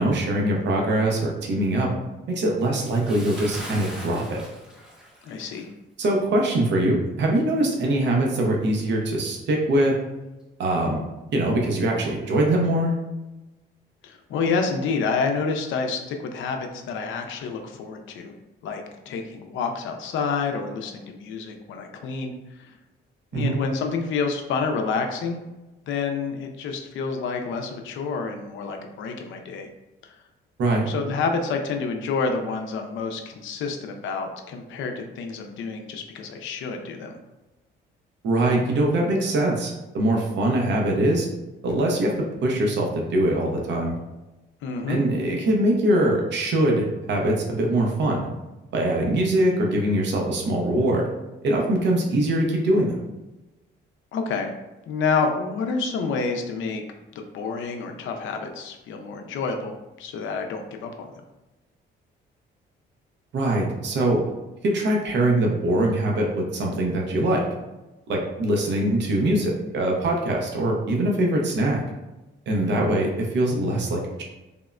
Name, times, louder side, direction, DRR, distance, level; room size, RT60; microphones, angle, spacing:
voice 1, 0.0-1.9 2.3-4.5 6.0-10.0 10.6-11.0 11.3-12.9 23.3-23.6 30.6-30.9 38.2-41.3 41.6-44.0 44.9-48.3 48.7-51.1 51.4-53.0 63.3-64.2 64.6-67.5 68.1-71.8 72.5-74.2, right 1 dB, 65° right, -1 dB, 0.7 m, -22 dB
Bathtub (filling or washing) / Splash splatter, 2.8-5.7 6.0-6.2 6.8-6.9, equal, 5° right, 0.6 m, -40 dB
voice 2, 5.2-5.7 14.0-18.3 18.6-22.3 22.6-22.7 23.3-25.4 25.9-29.7 30.0-30.2 30.9-37.2 44.6-45.0 54.1-54.5 54.9-56.8 57.2-61.1 72.6-72.9, left 4 dB, 75° left, 4 dB, 0.5 m, -28 dB
3.5 x 2.1 x 2.4 m, 1.0 s
cardioid pair, 90°, 20 cm